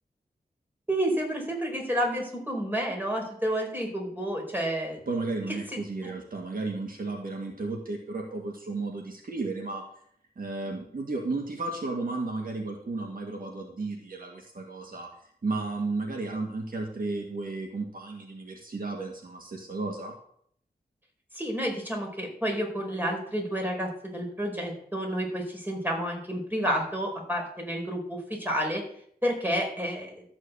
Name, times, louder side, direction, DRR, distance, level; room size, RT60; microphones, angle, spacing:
voice 1, 0.9-5.0 5.5-5.8 21.3-28.8 29.2-30.2, equal, 10° right, 0 dB, 4.7 m, -30 dB
voice 2, 5.1-9.8 10.4-15.1 15.4-20.1, right 3 dB, 60° right, 1 dB, 2.0 m, -33 dB
13.0 x 6.3 x 8.2 m, 0.65 s
wide cardioid pair, 100°, 16 cm